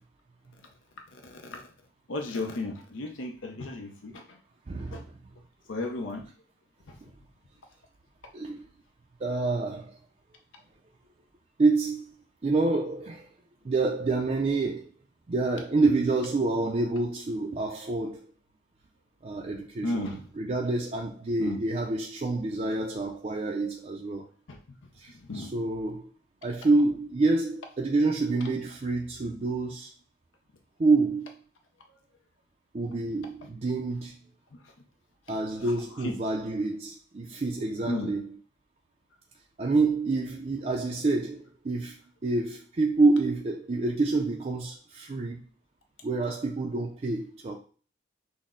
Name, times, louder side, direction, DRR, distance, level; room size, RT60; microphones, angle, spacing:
voice 1, 1.1-1.7 2.1-4.4 4.9-5.0 5.7-6.3 6.9-7.0 19.8-20.2 21.4-21.6 24.5-24.6 25.1-25.5 34.5-34.7 35.3-36.1 37.9-38.1, left 2 dB, 85° left, 0.6 m, -35 dB
voice 2, 4.7-5.1 7.0-7.1 8.3-8.6 9.2-10.0 11.6-12.1 12.4-13.3 13.6-14.9 15.3-18.2 19.2-20.1 20.4-24.3 25.0-26.1 26.4-29.9 30.8-31.3 32.7-34.1 35.3-38.3 39.6-42.0 42.2-45.4 46.0-47.6, right 3 dB, 35° right, 0.4 m, -27 dB
6.2 x 2.1 x 3.7 m
head